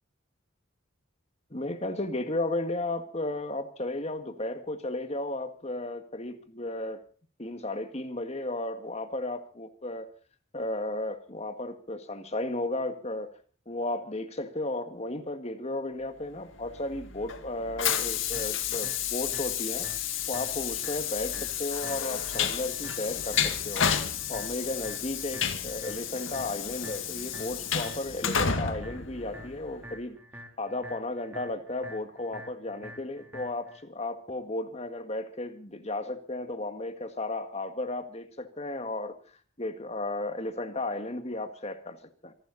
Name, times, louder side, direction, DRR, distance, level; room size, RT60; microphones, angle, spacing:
voice 1, 1.5-7.0 7.4-10.1 10.5-13.3 13.7-19.9 20.3-23.9 24.3-30.2 30.6-39.1 39.6-42.0 42.2-42.3, left 2 dB, 30° left, 8 dB, 2.0 m, -34 dB
Train, 16.6-29.8, left 8 dB, 65° left, 2.0 m, -31 dB
sound 1, 17.8-33.8, equal, 10° right, 3.7 m, -48 dB
26.0 x 12.0 x 4.2 m, 0.41 s
head